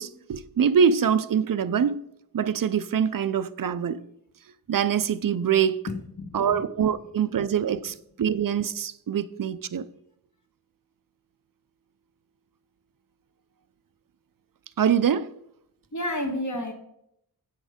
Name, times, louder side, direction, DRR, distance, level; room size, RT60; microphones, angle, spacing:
voice 1, 0.0-2.0 2.3-4.0 4.7-5.8 6.3-9.8 14.8-15.3, right 7 dB, 60° right, 0.5 m, -24 dB
voice 2, 5.9-6.6 15.9-16.7, left 1 dB, 45° left, 1.7 m, -31 dB
8.1 x 6.4 x 5.0 m
wide cardioid pair, 85°, 39 cm